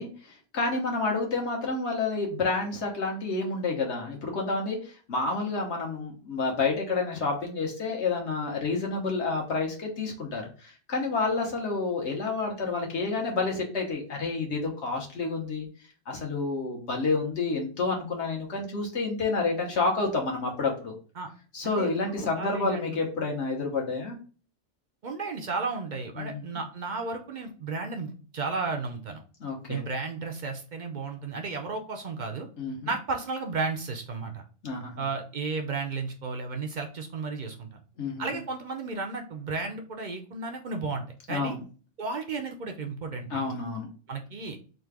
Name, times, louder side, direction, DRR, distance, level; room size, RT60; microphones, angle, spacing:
voice 1, 0.0-15.7 16.1-20.9 21.5-24.1 26.2-26.4 29.4-29.8 32.6-32.9 34.6-34.9 38.0-38.2 41.3-41.6 43.3-43.9, left 3 dB, 60° left, 0 dB, 1.4 m, -29 dB
voice 2, 21.6-22.9 25.0-29.2 29.7-32.5 32.9-34.4 35.0-37.8 38.2-41.6 42.0-43.6 44.1-44.6, right 4 dB, 55° right, 4 dB, 0.5 m, -33 dB
3.8 x 2.5 x 4.6 m, 0.38 s
omnidirectional pair, 1.3 m